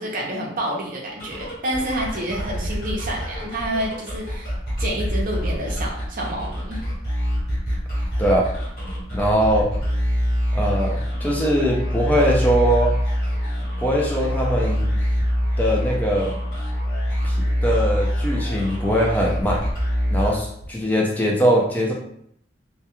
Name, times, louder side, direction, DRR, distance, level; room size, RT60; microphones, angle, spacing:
voice 1, 0.0-4.5 4.8-6.8, right 1 dB, 45° right, -1 dB, 0.6 m, -28 dB
sound 1, 1.1-20.8, equal, 50° left, 1.3 m, -25 dB
voice 2, 9.1-9.7 10.5-13.0 13.8-14.9 15.6-16.3 17.2-17.4 17.6-19.6 20.1-21.9, equal, 10° left, -3 dB, 0.3 m, -21 dB
2.2 x 2.2 x 2.9 m, 0.69 s
head